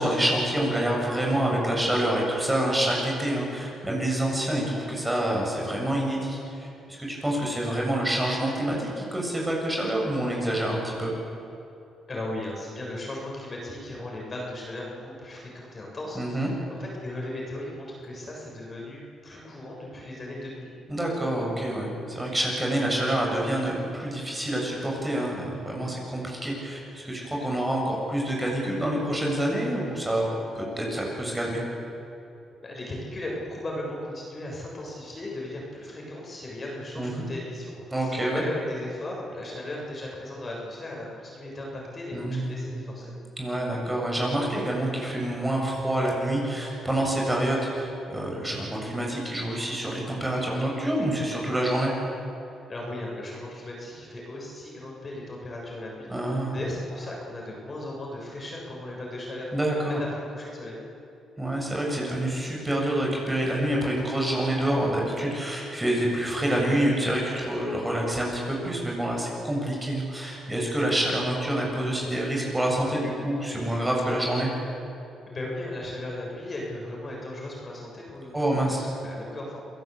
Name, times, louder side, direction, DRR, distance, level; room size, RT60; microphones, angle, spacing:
voice 1, 0.0-11.1 16.1-16.5 20.9-30.3 30.6-31.6 37.0-37.3 37.9-38.4 42.1-42.7 43.4-51.9 56.1-56.6 59.5-60.0 61.4-74.5 78.3-78.8, right 1 dB, 15° right, -2 dB, 7.7 m, -27 dB
voice 2, 12.1-16.5 16.8-20.7 32.6-43.2 52.7-59.5 59.9-60.8 75.3-79.6, left 1 dB, 30° left, -2 dB, 7.2 m, -37 dB
27.5 x 18.0 x 8.5 m, 2.8 s
cardioid pair, 90°, 0 cm